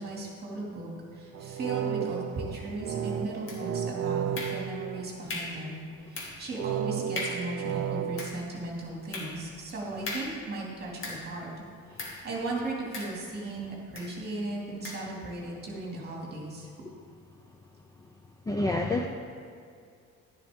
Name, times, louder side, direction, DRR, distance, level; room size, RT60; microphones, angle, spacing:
voice 1, 0.0-16.7, right 2 dB, 35° right, -3 dB, 2.4 m, -37 dB
sound 1, 1.3-5.7 6.5-8.3, right 9 dB, 55° right, 0.5 m, -33 dB
sound 2, 3.5-3.9 4.3-4.9 5.3-5.7 6.1-6.5 6.8-6.9 7.1-7.6 8.0-11.4 12.0-12.3 12.9-13.5 13.9-14.2 14.8-15.1, left 2 dB, 45° left, 1.7 m, -39 dB
voice 2, 18.5-19.1, left 2 dB, 10° left, 2 dB, 0.4 m, -27 dB
11.5 x 10.5 x 3.6 m, 2.4 s
cardioid pair, 180°, 30 cm